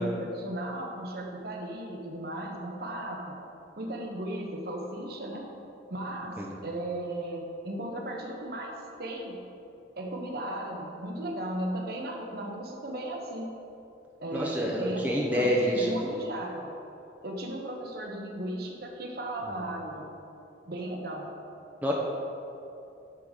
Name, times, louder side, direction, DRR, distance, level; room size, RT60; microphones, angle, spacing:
voice 1, 0.0-3.4 3.8-5.5 5.9-9.5 10.0-13.5 14.2-16.7 17.2-20.1 20.7-21.3, right 1 dB, 55° right, 1 dB, 1.0 m, -36 dB
voice 2, 14.3-15.9 21.8-21.9, equal, 10° right, -3 dB, 0.7 m, -27 dB
9.7 x 3.7 x 6.5 m, 2.8 s
head